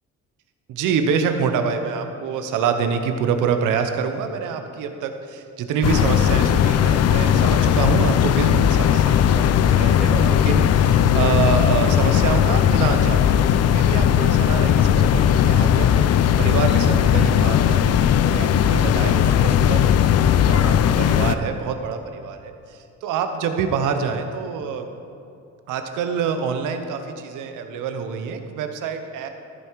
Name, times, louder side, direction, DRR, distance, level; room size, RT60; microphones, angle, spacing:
voice 1, 0.7-20.0 20.3-24.9 25.7-29.3, right 6 dB, 90° right, 7 dB, 0.9 m, -26 dB
sound 1, 5.8-21.4, left 9 dB, 55° left, 0.5 m, -17 dB
14.0 x 5.8 x 4.7 m, 2.5 s
cardioid pair, 90°, 30 cm